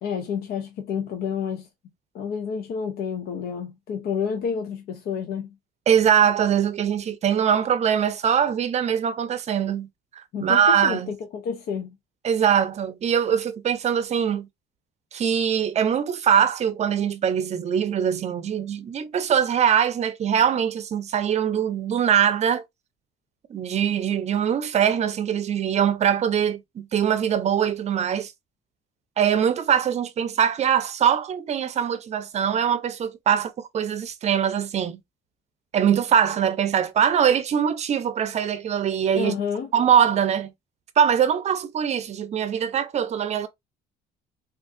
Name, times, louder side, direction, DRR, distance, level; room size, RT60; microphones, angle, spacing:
voice 1, 0.0-1.7 2.1-5.5 10.3-11.0 11.3-11.9 39.2-39.7, left 7 dB, 65° left, 0.6 m, -29 dB
voice 2, 5.9-9.9 10.1-11.1 12.2-14.5 15.1-22.6 23.5-28.3 29.2-35.0 35.7-39.3 39.7-40.5 41.0-43.5, right 8 dB, 40° right, 0.6 m, -22 dB
3.5 x 2.5 x 2.5 m
cardioid pair, 110°, 17 cm